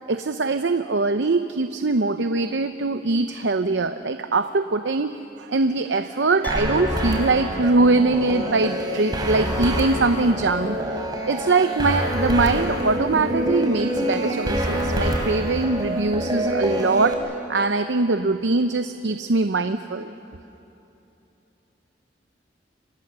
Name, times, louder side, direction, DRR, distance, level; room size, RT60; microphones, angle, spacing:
voice 1, 0.1-5.1 5.4-10.8 11.2-20.1, right 3 dB, 80° right, 9 dB, 0.7 m, -22 dB
Piano, 6.4-7.7 8.0-8.1, left 2 dB, 10° left, 3.4 m, -39 dB
sound 1, 6.5-17.1, equal, 25° right, 3.7 m, -26 dB
30.0 x 24.5 x 6.8 m, 2.9 s
head